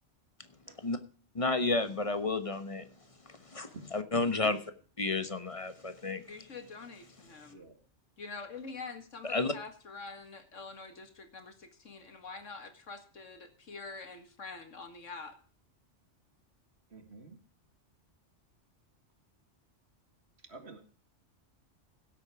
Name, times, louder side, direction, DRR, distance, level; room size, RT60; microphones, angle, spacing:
voice 1, 1.3-2.9 3.3-4.6 5.0-6.2 9.2-9.5, left 3 dB, 30° left, 1.1 m, -31 dB
voice 2, 6.3-7.7 8.2-15.3, left 4 dB, 90° left, 2.2 m, -46 dB
voice 3, 16.9-17.4 20.4-20.9, right 2 dB, 60° right, 2.3 m, -49 dB
16.5 x 8.4 x 4.8 m
omnidirectional pair, 1.2 m